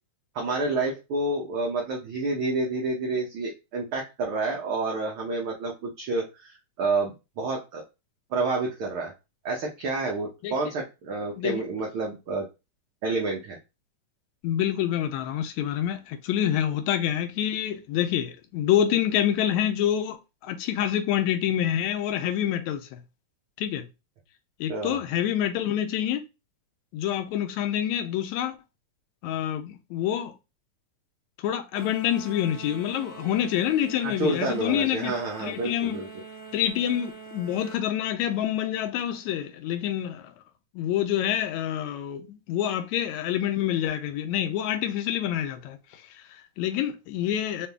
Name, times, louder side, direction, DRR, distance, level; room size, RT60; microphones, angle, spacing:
voice 1, 0.3-6.5 6.8-7.8 8.3-9.1 9.4-12.5 13.0-13.6 24.7-25.0 34.0-36.1, right 3 dB, 65° right, 1.4 m, -29 dB
voice 2, 14.4-20.2 20.4-23.0 23.6-23.9 24.6-26.2 26.9-28.6 29.2-30.3 31.4-35.1 35.4-36.0 36.5-40.3 40.7-45.8 46.1-47.7, left 10 dB, 80° left, 2.0 m, -27 dB
sound 1, 31.7-37.8, right 5 dB, 5° left, 1.1 m, -44 dB
5.7 x 2.7 x 3.4 m
omnidirectional pair, 3.5 m